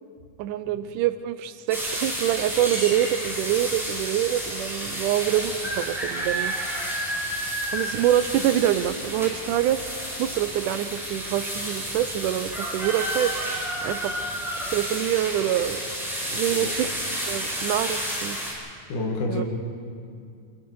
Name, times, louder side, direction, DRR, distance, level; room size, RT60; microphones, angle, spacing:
voice 1, 0.4-6.6 7.7-13.4 13.8-14.2 14.7-15.8 16.3-16.9 17.3-18.4 19.3-19.4, right 12 dB, 85° right, 12 dB, 2.2 m, -25 dB
sound 1, 1.7-18.5, equal, ahead, 5.8 m, -31 dB
voice 2, 18.9-19.4, left 2 dB, 75° left, 0 dB, 3.4 m, -28 dB
26.5 x 22.5 x 4.7 m, 2.3 s
omnidirectional pair, 3.6 m